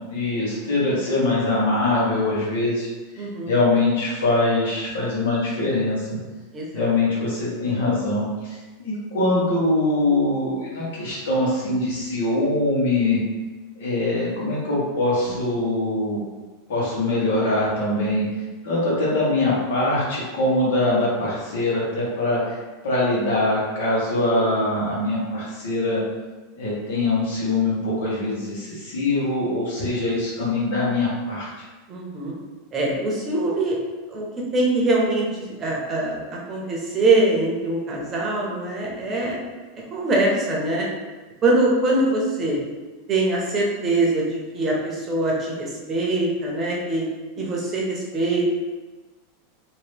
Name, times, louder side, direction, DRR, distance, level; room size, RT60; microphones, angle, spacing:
voice 1, 0.1-2.9 3.1-6.2 6.7-13.2 13.8-16.2 16.7-18.2 18.6-22.6 22.8-26.0 26.5-31.6, left 2 dB, 90° left, -6 dB, 1.5 m, -23 dB
voice 2, 3.2-3.5 6.5-6.7 31.9-32.4 32.7-33.8 34.1-34.3 34.5-39.4 39.9-40.9 41.4-42.6 43.1-47.0 47.3-48.4, right 2 dB, 25° right, -3 dB, 0.8 m, -23 dB
3.0 x 2.8 x 3.3 m, 1.2 s
supercardioid pair, 150°, 0 cm